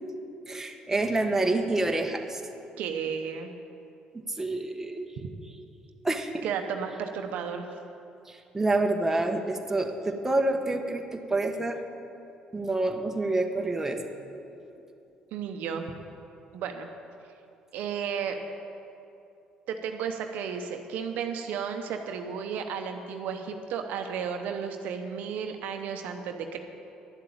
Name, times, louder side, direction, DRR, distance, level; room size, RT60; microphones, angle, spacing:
voice 1, 0.5-2.4 4.1-5.1 6.0-6.5 8.3-11.8 12.5-14.1, right 2 dB, 15° right, 4 dB, 1.2 m, -28 dB
voice 2, 2.8-3.5 6.4-7.7 15.3-15.9 16.5-16.9 17.7-18.4 19.7-26.6, right 7 dB, 75° right, 5 dB, 0.8 m, -33 dB
11.0 x 7.7 x 8.6 m, 2.8 s
supercardioid pair, 70°, 3 cm